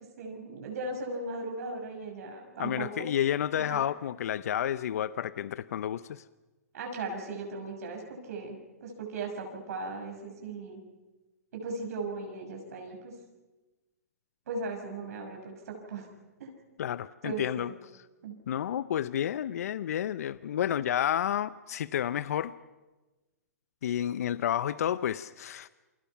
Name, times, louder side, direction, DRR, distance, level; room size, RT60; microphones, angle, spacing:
voice 1, 0.2-3.1 3.5-3.8 6.7-10.8 11.5-13.1 14.5-16.1 16.4-16.5 17.2-17.7 18.2-18.3, right 3 dB, 70° right, 2 dB, 6.3 m, -38 dB
voice 2, 2.6-6.2 16.8-17.7 18.5-22.5 23.8-25.7, left 10 dB, 70° left, 16 dB, 0.7 m, -30 dB
28.0 x 25.0 x 5.9 m, 1.1 s
hypercardioid pair, 120°, 9 cm